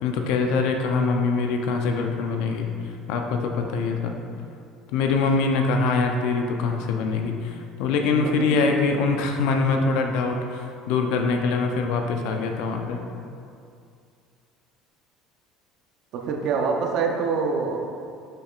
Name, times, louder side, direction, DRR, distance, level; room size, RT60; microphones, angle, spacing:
voice 1, 0.0-2.7 3.1-4.1 4.9-13.0, left 4 dB, 80° left, 3 dB, 0.6 m, -24 dB
voice 2, 16.1-17.8, right 5 dB, 60° right, 2 dB, 0.7 m, -25 dB
6.7 x 5.8 x 2.5 m, 2.4 s
cardioid pair, 135°, 0 cm